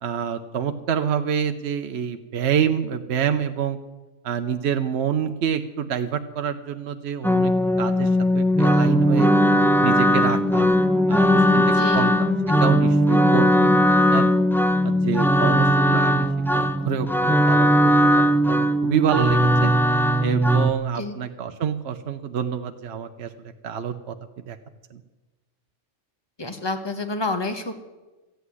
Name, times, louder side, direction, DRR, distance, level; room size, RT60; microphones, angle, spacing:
voice 1, 0.0-3.8 4.2-7.5 7.8-9.3 9.8-10.7 11.1-11.6 11.9-14.3 14.8-19.7 20.2-23.3 23.6-24.2 24.5-24.6 24.9-25.0, right 8 dB, 65° right, 7 dB, 0.9 m, -27 dB
sound 1, 7.2-20.7, equal, 5° left, 0.4 m, -19 dB
voice 2, 11.7-12.1 20.9-21.1 26.4-27.7, left 2 dB, 20° left, 7 dB, 1.2 m, -28 dB
14.0 x 8.3 x 9.6 m, 1.2 s
omnidirectional pair, 1.3 m